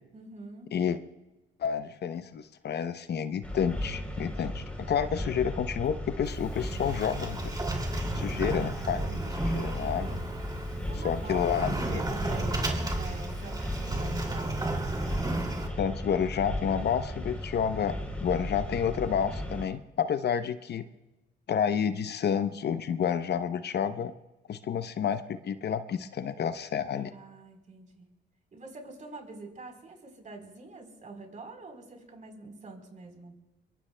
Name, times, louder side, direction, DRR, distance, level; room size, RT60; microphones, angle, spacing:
voice 1, 0.1-0.7 8.3-8.5 10.9-14.5 27.1-28.1 28.5-33.3, right 3 dB, 40° right, 3 dB, 3.9 m, -45 dB
voice 2, 1.6-7.4 8.1-10.2 11.0-12.0 15.8-20.8 21.5-24.1 24.5-27.1, left 8 dB, 55° left, 10 dB, 0.8 m, -30 dB
sound 1, 3.4-19.7, equal, 5° left, 3.6 m, -36 dB
Sliding door, 6.2-15.7, right 2 dB, 20° right, 2.6 m, -34 dB
24.5 x 22.5 x 2.2 m, 1.1 s
cardioid pair, 90°, 20 cm